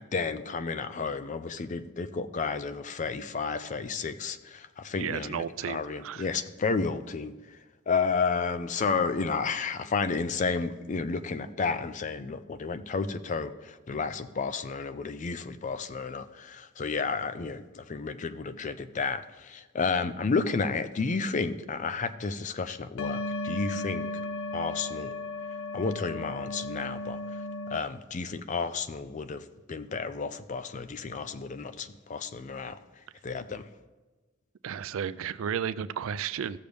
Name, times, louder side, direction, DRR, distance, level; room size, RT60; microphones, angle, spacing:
voice 1, 0.0-7.6 7.9-24.1 24.5-25.1 25.7-33.7, left 4 dB, 35° left, 12 dB, 0.4 m, -32 dB
voice 2, 5.0-6.3 34.6-36.6, right 8 dB, 65° right, 16 dB, 0.3 m, -33 dB
sound 1, 23.0-27.8, left 2 dB, 85° left, 0.5 m, -35 dB
15.5 x 6.6 x 3.4 m, 1.3 s
head